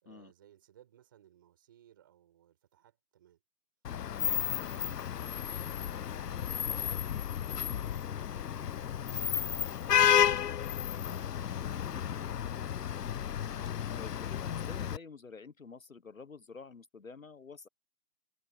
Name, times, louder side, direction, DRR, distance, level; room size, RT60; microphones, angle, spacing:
voice 1, 0.0-3.4 4.2-10.4 10.8-13.0, right 11 dB, 15° right, 4.7 m, -63 dB
Vehicle horn car horn honking / Traffic noise roadway noise, 3.8-15.0, left 9 dB, 85° left, 0.6 m, -32 dB
voice 2, 14.0-17.7, left 4 dB, 60° left, 1.2 m, -49 dB
hypercardioid pair, 175°, 47 cm